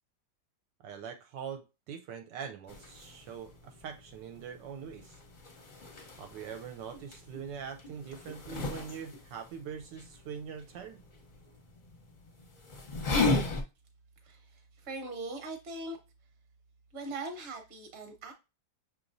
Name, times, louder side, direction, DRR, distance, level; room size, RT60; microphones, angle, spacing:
voice 1, 0.8-5.2 6.2-11.0, right 7 dB, 75° right, 1.2 m, -43 dB
sound 1, 2.7-13.6, left 3 dB, 45° left, 0.6 m, -37 dB
voice 2, 14.2-16.0 16.9-18.3, right 2 dB, 40° right, 1.0 m, -41 dB
6.0 x 3.1 x 2.6 m
omnidirectional pair, 2.0 m